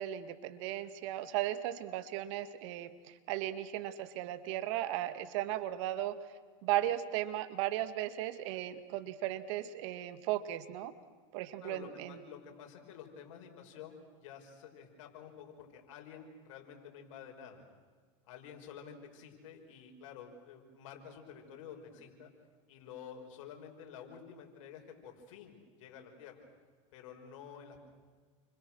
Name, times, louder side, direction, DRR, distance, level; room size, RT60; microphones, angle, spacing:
voice 1, 0.0-6.2 6.6-10.9 11.3-12.2, right 13 dB, 65° right, 12 dB, 1.9 m, -36 dB
voice 2, 11.6-17.6 18.2-22.3 22.7-26.5 26.9-27.8, left 7 dB, 70° left, 3 dB, 6.0 m, -50 dB
30.0 x 26.0 x 6.4 m, 1.5 s
hypercardioid pair, 105°, 17 cm